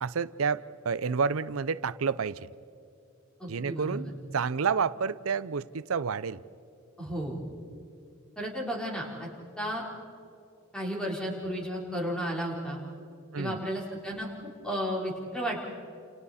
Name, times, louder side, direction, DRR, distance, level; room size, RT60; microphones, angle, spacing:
voice 1, 0.0-2.5 3.5-6.4 13.3-13.7, right 5 dB, 90° right, 16 dB, 0.6 m, -30 dB
voice 2, 3.4-4.1 7.0-7.4 8.4-9.3 9.6-9.8 10.7-12.8 13.4-14.3 14.6-15.6, equal, 5° left, -3 dB, 4.0 m, -33 dB
29.0 x 29.0 x 4.2 m, 2.6 s
head